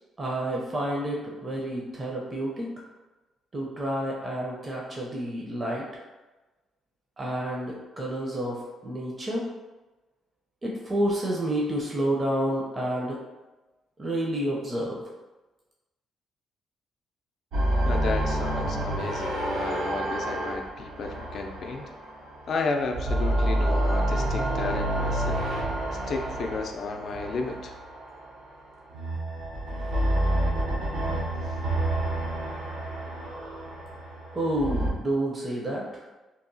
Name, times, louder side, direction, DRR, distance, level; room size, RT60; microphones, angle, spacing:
voice 1, 0.2-2.7 3.5-6.0 7.2-9.5 10.6-13.2 14.0-15.0 34.3-36.1, right 1 dB, 30° right, -3 dB, 0.5 m, -29 dB
sound 1, 17.5-22.5 22.8-28.1 28.9-34.9, right 1 dB, 85° right, 0.6 m, -28 dB
voice 2, 17.8-21.9 22.5-25.4 26.1-27.8 31.4-31.5, left 4 dB, 60° left, 4 dB, 0.3 m, -33 dB
2.9 x 2.0 x 2.6 m, 1.1 s
cardioid pair, 90°, 0 cm